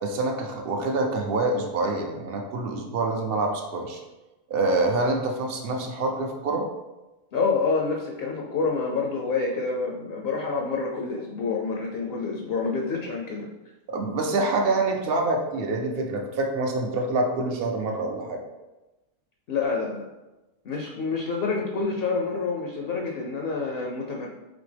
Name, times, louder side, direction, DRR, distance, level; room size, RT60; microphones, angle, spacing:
voice 1, 0.0-4.0 4.5-6.7 13.9-18.4, right 2 dB, 60° right, 2 dB, 0.6 m, -26 dB
voice 2, 7.3-13.5 19.5-20.0 20.6-24.3, left 4 dB, 60° left, 0 dB, 0.6 m, -27 dB
4.1 x 3.0 x 3.3 m, 1.1 s
omnidirectional pair, 1.3 m